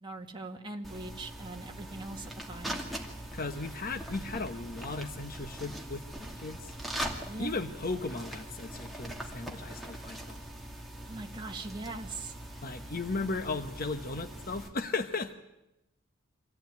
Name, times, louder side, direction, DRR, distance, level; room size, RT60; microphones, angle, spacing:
voice 1, 0.0-2.8 7.3-7.6 11.1-12.3, right 2 dB, 20° right, 2 dB, 1.9 m, -41 dB
sound 1, 0.8-14.7, right 1 dB, ahead, 2.5 m, -42 dB
voice 2, 3.3-6.7 7.4-10.4 12.6-15.4, left 3 dB, 45° left, 6 dB, 1.1 m, -36 dB
25.5 x 16.0 x 9.4 m, 0.96 s
head